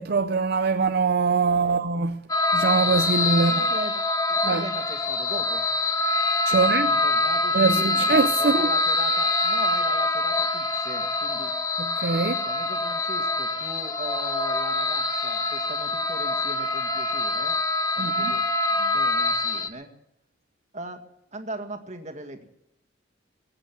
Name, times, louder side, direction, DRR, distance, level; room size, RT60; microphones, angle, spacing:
voice 1, 0.0-2.2 2.5-3.7 4.4-4.7 6.4-6.9 7.5-8.7 11.8-12.4 18.0-18.3, right 4 dB, 55° right, 0.6 m, -23 dB
voice 2, 1.3-1.9 3.3-5.6 6.5-11.6 12.4-17.6 18.0-18.4 18.7-19.9 20.7-21.0 21.3-22.4, right 2 dB, 40° right, 1.9 m, -39 dB
sound 1, 2.3-19.7, left 2 dB, 20° left, 0.9 m, -25 dB
21.5 x 8.9 x 7.5 m
head